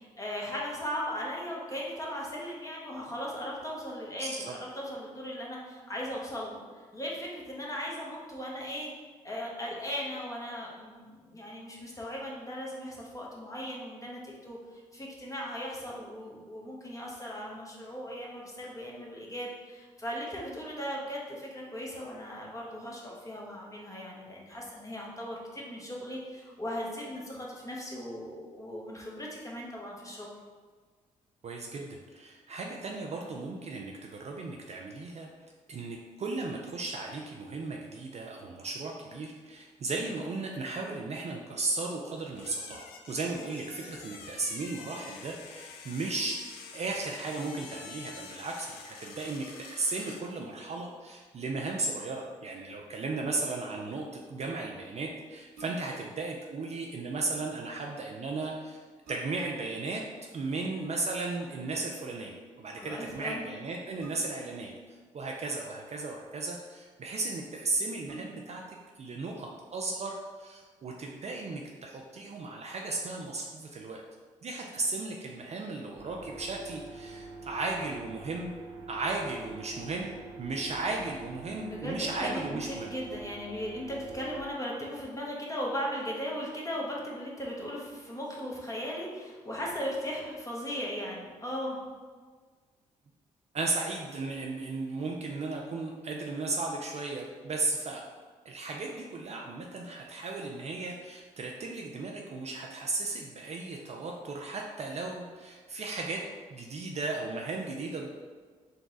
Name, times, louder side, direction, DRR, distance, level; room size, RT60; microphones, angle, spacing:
voice 1, 0.0-6.6 6.9-8.9 9.2-14.6 14.9-30.3 62.8-63.4 81.6-91.8, equal, 20° left, -3 dB, 1.2 m, -37 dB
voice 2, 4.2-4.5 31.4-35.3 35.7-46.4 46.7-58.8 59.1-60.0 60.3-64.7 65.1-68.6 69.0-74.0 74.4-78.5 78.9-82.9 93.5-98.0 98.5-106.2 106.5-108.1, right 3 dB, 40° right, 0 dB, 0.5 m, -35 dB
sound 1, 42.3-50.3, left 6 dB, 75° left, 0.4 m, -47 dB
sound 2, 55.5-56.1 58.1-58.2 58.7-59.6 61.2-61.5 64.0-64.6 65.6-66.3 67.0-67.1 67.4-67.5 68.0-68.7 69.2-69.3, right 2 dB, 75° right, 1.2 m, -50 dB
sound 3, 76.0-84.4, right 3 dB, 20° right, 0.9 m, -45 dB
3.9 x 2.2 x 3.9 m, 1.5 s
hypercardioid pair, 45°, 16 cm